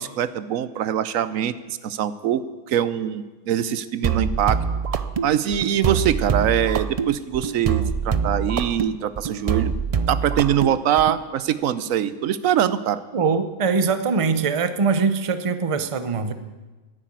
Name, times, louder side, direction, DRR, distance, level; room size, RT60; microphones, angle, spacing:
voice 1, 0.0-4.6 5.2-9.7 10.1-13.0, right 10 dB, 80° right, 15 dB, 1.0 m, -23 dB
sound 1, 4.0-11.2, right 6 dB, 60° right, 0.3 m, -25 dB
voice 2, 13.1-16.3, right 5 dB, 30° right, 11 dB, 0.7 m, -22 dB
11.0 x 10.0 x 8.9 m, 1.2 s
omnidirectional pair, 1.4 m